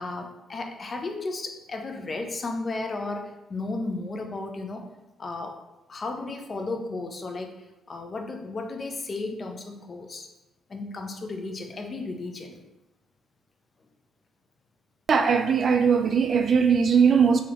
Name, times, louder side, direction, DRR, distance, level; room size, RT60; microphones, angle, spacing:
voice 1, 0.0-4.9 5.2-5.6 5.9-7.5 7.9-10.3 10.7-12.6, left 3 dB, 40° left, 0.5 m, -34 dB
voice 2, 15.1-17.4, right 6 dB, 50° right, 0.3 m, -20 dB
3.9 x 2.8 x 2.9 m
cardioid pair, 90°, 0 cm